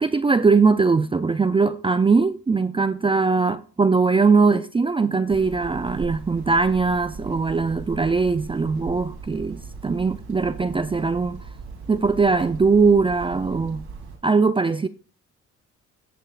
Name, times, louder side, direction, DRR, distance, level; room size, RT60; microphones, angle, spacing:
voice 1, 0.0-11.4 11.9-13.9 14.2-14.9, right 4 dB, 20° right, 0.4 m, -20 dB
Hammer, 5.3-14.2, right 4 dB, 80° right, 2.9 m, -38 dB
18.0 x 6.1 x 2.4 m
cardioid pair, 90°, 30 cm